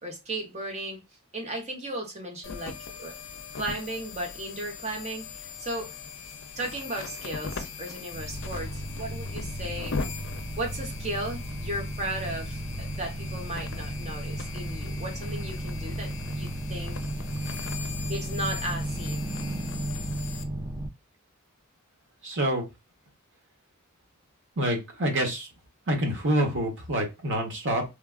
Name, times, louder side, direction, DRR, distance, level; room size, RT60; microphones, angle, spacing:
voice 1, 0.0-1.0 1.3-3.1 3.5-5.9 6.6-9.9 10.6-17.0 18.1-19.3, right 1 dB, 30° right, 0.9 m, -35 dB
sound 1, 2.4-20.4, left 5 dB, 60° left, 0.5 m, -40 dB
sound 2, 8.1-20.9, right 1 dB, 15° right, 0.3 m, -34 dB
voice 2, 22.2-22.7 24.6-25.5 25.9-27.8, right 1 dB, 55° right, 1.0 m, -27 dB
3.2 x 2.3 x 2.3 m
head